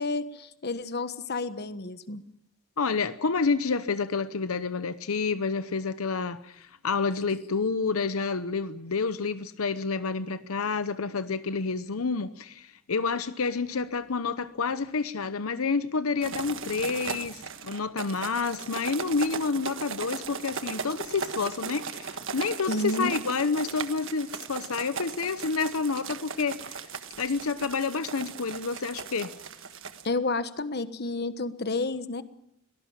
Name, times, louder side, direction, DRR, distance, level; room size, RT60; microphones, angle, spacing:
voice 1, 0.0-2.2 22.7-23.1 30.0-32.2, left 2 dB, 50° left, 1.3 m, -30 dB
voice 2, 2.8-29.3, left 4 dB, 85° left, 0.8 m, -29 dB
sound 1, 16.2-30.1, right 6 dB, 65° right, 1.5 m, -38 dB
23.5 x 18.5 x 7.3 m
head